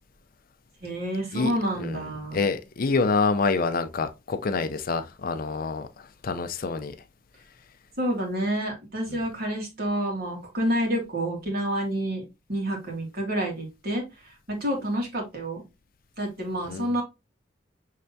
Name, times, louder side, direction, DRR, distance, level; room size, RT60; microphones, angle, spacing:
voice 1, 0.8-2.4 8.0-12.2 12.5-15.6 16.2-17.0, equal, 55° right, 1.7 m, -28 dB
voice 2, 1.8-5.9 6.2-7.0 9.1-9.2 16.7-16.9, left 4 dB, 50° left, 0.5 m, -27 dB
5.7 x 3.3 x 2.6 m
head